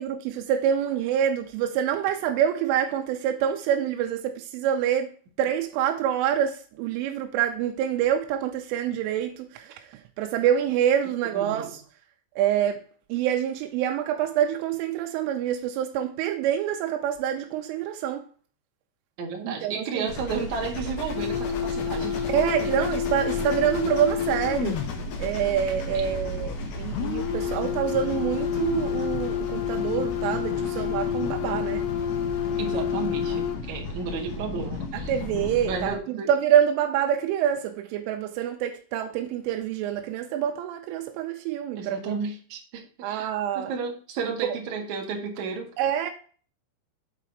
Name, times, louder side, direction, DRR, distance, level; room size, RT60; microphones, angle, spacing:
voice 1, 0.0-5.1 5.4-9.8 10.2-11.8 12.4-12.8 13.1-18.3 19.5-20.1 22.3-24.8 25.2-31.9 34.9-42.1 43.0-43.7 45.8-46.1, right 9 dB, 85° right, 3.3 m, -26 dB
voice 2, 11.3-11.7 19.2-22.3 22.6-22.7 25.9-26.1 32.6-35.1 35.6-36.3 41.8-43.3 43.5-45.7, right 5 dB, 55° right, 2.4 m, -33 dB
sound 1, 20.1-36.0, left 2 dB, 60° left, 2.3 m, -34 dB
sound 2, 21.2-25.0 26.9-33.6, left 9 dB, 75° left, 2.4 m, -29 dB
7.9 x 4.8 x 5.8 m
omnidirectional pair, 5.5 m